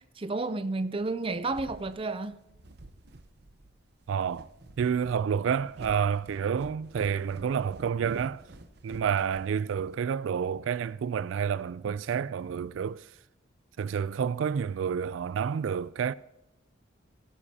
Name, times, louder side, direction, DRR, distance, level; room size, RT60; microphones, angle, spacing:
voice 1, 0.0-2.4, right 3 dB, 25° right, 0.5 m, -31 dB
sound 1, 1.1-10.0, right 2 dB, 55° right, 0.8 m, -50 dB
voice 2, 4.1-4.5 4.8-8.4 8.8-13.1 13.8-16.1, right 7 dB, 80° right, 0.3 m, -29 dB
17.0 x 10.0 x 2.8 m
head